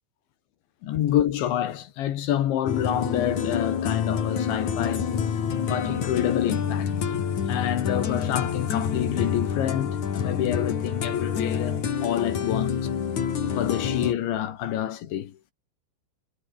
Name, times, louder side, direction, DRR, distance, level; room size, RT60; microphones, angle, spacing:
voice 1, 0.8-5.1 5.6-12.9 13.6-15.4, left 11 dB, 70° left, 4.0 m, -28 dB
sound 1, 2.7-14.1, left 7 dB, 45° left, 3.4 m, -27 dB
omnidirectional pair, 5.9 m